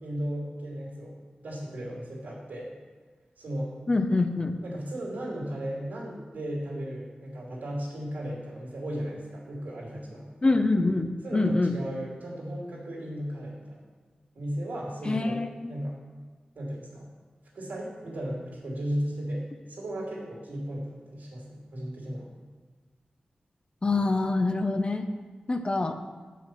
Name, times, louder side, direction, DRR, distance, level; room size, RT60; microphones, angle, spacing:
voice 1, 0.0-2.7 3.4-3.7 4.6-10.3 11.2-13.8 14.3-15.9 16.5-17.1 17.5-22.3, equal, 90° right, -4 dB, 2.7 m, -35 dB
voice 2, 3.9-4.5 10.4-11.7 15.0-15.7 23.8-25.1 25.5-25.9, left 2 dB, 35° left, 7 dB, 0.7 m, -25 dB
7.6 x 5.9 x 6.1 m, 1.4 s
wide cardioid pair, 65°, 3 cm